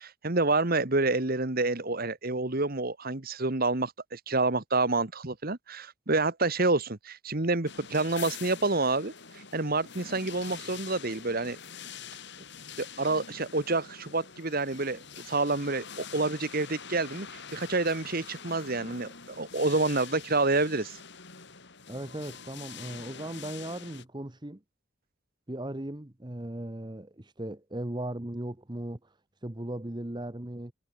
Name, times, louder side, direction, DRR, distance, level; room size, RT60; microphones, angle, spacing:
voice 1, 0.0-11.6 12.8-21.0, right 3 dB, 40° right, 1.5 m, -28 dB
sound 1, 7.7-24.0, left 7 dB, 50° left, 4.8 m, -45 dB
voice 2, 21.9-24.6 25.5-29.1 29.4-30.7, right 1 dB, 20° right, 1.0 m, -37 dB
head